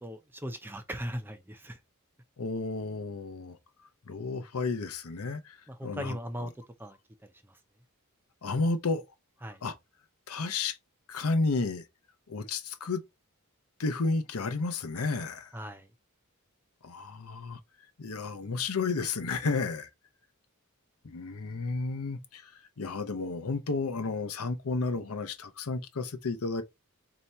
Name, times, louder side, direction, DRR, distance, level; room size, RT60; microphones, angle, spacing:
voice 1, 0.0-1.8 5.7-6.5 6.8-7.0 9.4-9.6 15.5-15.9, equal, 10° right, 0.5 m, -38 dB
voice 2, 2.4-3.6 4.1-5.6 5.8-6.5 8.4-9.0 9.6-9.7 10.3-10.8 11.1-11.8 12.3-13.0 13.8-15.5 16.8-17.6 18.0-19.9 21.0-26.6, left 3 dB, 75° left, 0.7 m, -32 dB
3.2 x 2.9 x 4.1 m
head